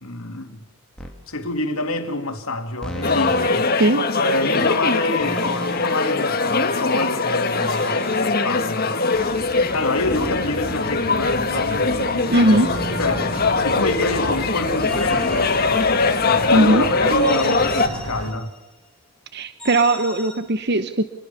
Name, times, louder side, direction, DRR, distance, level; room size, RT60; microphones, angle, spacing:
voice 1, 0.0-0.6 1.3-3.7 4.2-8.9 9.7-11.9 13.0-15.6 16.5-18.5, left 2 dB, 75° left, 2.8 m, -27 dB
sound 1, 1.0-1.2 2.8-3.5 5.2-6.1 7.6-8.3 10.0-11.5 12.4-14.0 14.8-16.4 17.2-18.7 19.6-20.4, equal, 5° left, 3.4 m, -34 dB
sound 2, 3.0-17.9, left 3 dB, 45° left, 1.8 m, -21 dB
sound 3, 9.1-18.3, right 1 dB, 70° right, 2.1 m, -34 dB
voice 2, 12.3-12.7 16.5-16.8 19.3-21.0, right 1 dB, 50° right, 1.0 m, -18 dB
27.0 x 22.0 x 6.9 m
head